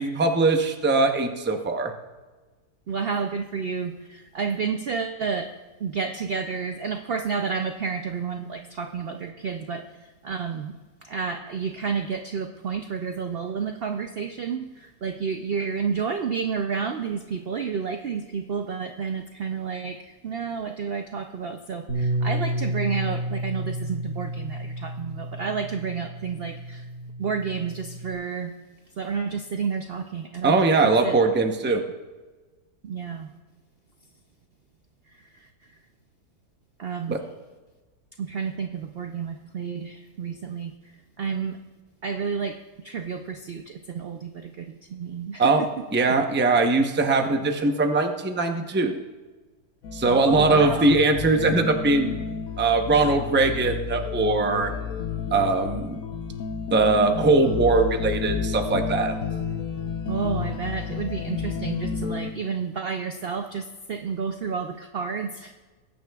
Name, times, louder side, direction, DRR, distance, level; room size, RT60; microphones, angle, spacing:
voice 1, 0.0-1.9 30.4-31.8 37.1-37.2 45.4-45.6 45.9-49.0 49.9-52.2 52.6-54.7 55.3-56.0 56.7-59.1, right 3 dB, 15° right, 4 dB, 0.3 m, -21 dB
voice 2, 2.9-5.5 5.8-10.7 11.0-26.9 27.2-28.5 29.0-30.7 31.0-31.2 32.8-33.3 35.1-35.7 36.8-37.2 38.2-41.6 42.0-45.8 50.0-51.0 60.1-65.5, right 6 dB, 80° right, 6 dB, 0.5 m, -30 dB
Bass guitar, 21.9-28.1, right 1 dB, 50° right, 2.1 m, -31 dB
sound 1, 49.8-62.3, left 6 dB, 65° left, 1.2 m, -31 dB
20.5 x 9.4 x 2.3 m, 1.3 s
omnidirectional pair, 1.7 m